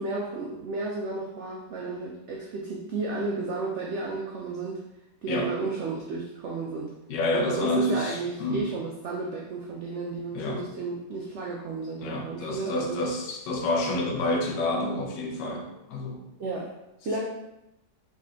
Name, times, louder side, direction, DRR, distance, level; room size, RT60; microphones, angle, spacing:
voice 1, 0.0-4.8 5.2-7.0 7.3-13.0 16.4-16.8 17.0-17.3, right 3 dB, 85° right, -1 dB, 0.6 m, -33 dB
voice 2, 5.3-5.7 7.1-8.7 10.3-10.6 12.0-16.3, left 1 dB, 80° left, 1 dB, 1.4 m, -28 dB
3.8 x 3.2 x 3.6 m, 0.92 s
omnidirectional pair, 1.9 m